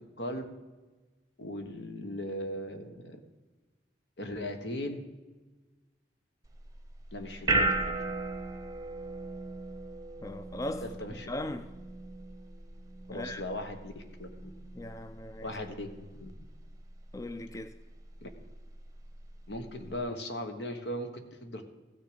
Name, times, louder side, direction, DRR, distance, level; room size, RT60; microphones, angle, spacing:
voice 1, 1.4-3.2 4.2-5.0 7.1-8.0 10.8-11.3 13.1-14.5 15.4-16.3 18.2-18.3 19.5-21.7, left 1 dB, 70° left, 1.3 m, -38 dB
sound 1, 6.4-20.0, right 2 dB, 20° right, 0.8 m, -37 dB
voice 2, 10.2-10.9 11.3-11.7 13.1-13.4 14.7-15.5 17.1-17.8, left 1 dB, 20° left, 0.3 m, -38 dB
15.5 x 6.6 x 5.0 m
head